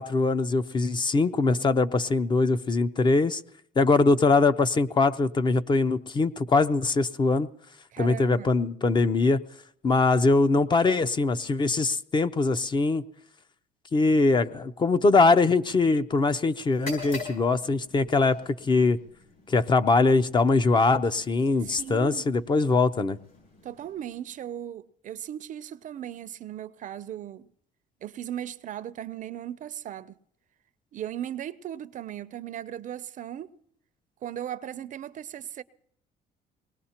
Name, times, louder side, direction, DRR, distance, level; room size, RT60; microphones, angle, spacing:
voice 1, 0.0-3.4 3.8-7.5 8.0-9.4 9.8-13.0 13.9-19.0 19.5-23.2, left 3 dB, 25° left, 0.5 m, -22 dB
voice 2, 7.9-8.5 21.6-22.2 23.6-27.5 28.0-30.1 30.9-33.5 34.2-35.6, right 10 dB, 50° right, 0.5 m, -37 dB
sound 1, 16.7-24.5, left 2 dB, 55° left, 7.5 m, -45 dB
23.5 x 19.5 x 2.9 m
cardioid pair, 110°, 17 cm